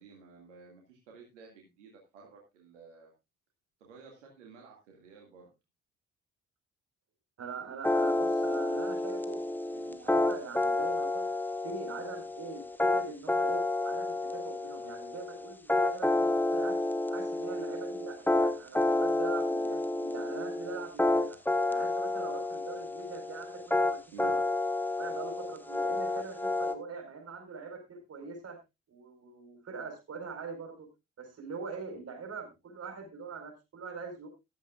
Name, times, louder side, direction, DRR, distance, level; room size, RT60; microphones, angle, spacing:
voice 1, 0.0-3.1 3.8-5.5 9.7-9.9 24.1-24.4, right 5 dB, 75° right, 0 dB, 2.2 m, -53 dB
voice 2, 7.4-9.4 9.7-11.3 11.6-16.8 17.1-21.4 21.7-24.4 24.9-28.6 28.9-30.9 31.2-34.3, right 4 dB, 45° right, 3 dB, 4.6 m, -43 dB
sound 1, 7.8-26.7, left 2 dB, 5° left, 1.3 m, -30 dB
14.0 x 12.5 x 2.4 m, 0.24 s
figure-of-eight pair, 45°, 36 cm